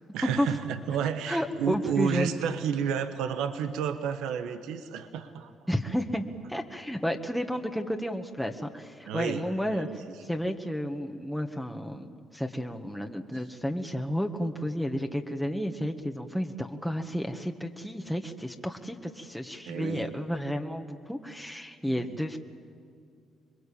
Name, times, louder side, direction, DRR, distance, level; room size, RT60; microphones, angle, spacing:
voice 1, 0.1-5.5 9.1-9.9 10.3-10.4 19.6-20.1 21.9-22.1, right 7 dB, 80° right, 9 dB, 1.3 m, -31 dB
voice 2, 1.3-2.4 5.7-9.9 10.2-22.4, equal, ahead, 3 dB, 1.7 m, -32 dB
26.0 x 21.5 x 8.7 m, 2.3 s
supercardioid pair, 65°, 0 cm